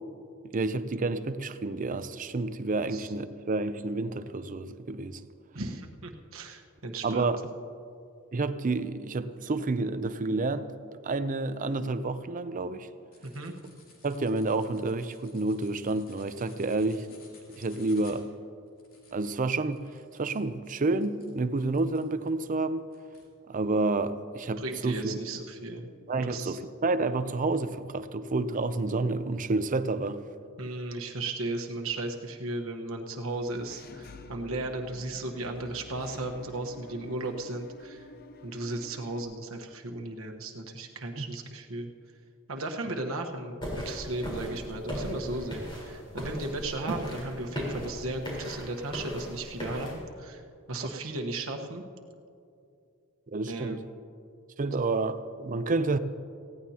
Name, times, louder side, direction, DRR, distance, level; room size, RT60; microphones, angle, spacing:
voice 1, 0.4-5.2 7.0-7.4 8.3-10.7 11.0-12.9 14.0-17.1 17.6-18.3 19.1-22.9 23.5-25.2 26.1-30.2 41.2-41.3 53.3-53.8 54.6-56.0, right 3 dB, 40° right, 0.5 m, -29 dB
voice 2, 5.5-7.3 13.2-13.5 24.6-25.9 26.2-26.6 30.6-38.1 38.4-41.9 42.5-50.4 50.7-51.8 53.5-53.8, right 2 dB, 75° right, 1.2 m, -35 dB
sound 1, 13.1-22.4 22.9-23.3, left 3 dB, 75° left, 3.3 m, -57 dB
Engine / Mechanisms, 33.3-39.2, left 2 dB, 45° left, 0.6 m, -49 dB
sound 2, 43.6-50.0, equal, 25° left, 4.2 m, -37 dB
18.5 x 16.0 x 2.9 m
head